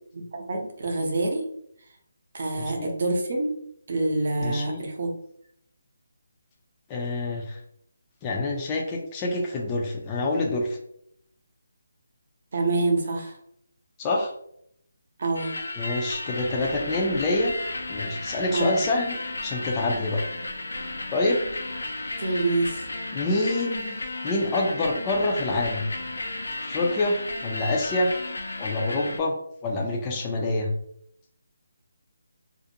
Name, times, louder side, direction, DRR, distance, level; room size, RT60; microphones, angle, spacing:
voice 1, 0.3-1.4 2.3-3.5 3.9-5.1 12.5-13.4 15.2-15.5 18.5-18.8 22.2-22.8, right 2 dB, 50° right, 2 dB, 0.7 m, -26 dB
voice 2, 2.5-2.9 4.4-4.8 6.9-7.6 8.2-10.8 14.0-14.3 15.8-17.6 17.9-20.2 21.1-21.4 22.0-22.2 23.1-25.8 26.6-28.1 28.6-29.4 29.6-30.7, left 2 dB, 20° left, -1 dB, 0.4 m, -27 dB
sound 1, 15.3-29.2, left 2 dB, 85° left, 0.4 m, -34 dB
2.5 x 2.1 x 2.7 m, 0.70 s
figure-of-eight pair, 160°, 0 cm